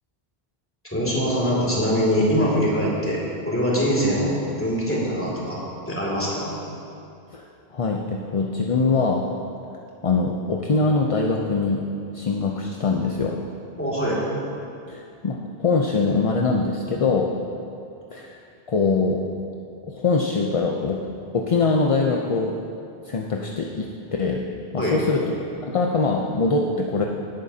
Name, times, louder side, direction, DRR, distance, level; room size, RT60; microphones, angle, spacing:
voice 1, 0.9-5.6 5.9-6.6 13.8-14.2 24.8-25.0, equal, 10° left, -6 dB, 2.4 m, -23 dB
voice 2, 7.7-9.3 10.0-11.8 12.1-13.4 14.9-17.3 18.1-18.4 18.7-19.2 19.9-21.0 21.3-22.6 23.1-23.9 24.2-24.4 24.7-25.2 25.6-27.0, left 4 dB, 40° left, 0 dB, 0.5 m, -23 dB
17.0 x 9.0 x 2.8 m, 2.6 s
omnidirectional pair, 1.1 m